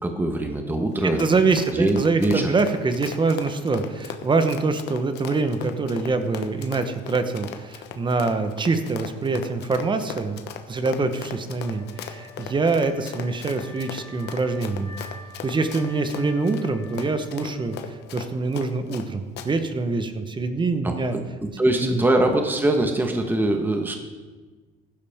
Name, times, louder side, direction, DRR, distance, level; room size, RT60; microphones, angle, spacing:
voice 1, 0.0-1.2 1.7-2.5 20.8-24.0, right 1 dB, 10° right, 4 dB, 1.3 m, -23 dB
Run, 0.9-19.1 19.4-19.5, left 9 dB, 70° left, 1.2 m, -38 dB
voice 2, 1.2-10.4 10.7-15.0 15.4-17.8 18.1-21.1 21.7-22.0, right 3 dB, 25° right, 9 dB, 1.2 m, -24 dB
Wind instrument woodwind instrument, 11.6-18.6, left 2 dB, 20° left, 3.2 m, -47 dB
15.0 x 11.5 x 3.6 m, 1.3 s
supercardioid pair, 95°, 18 cm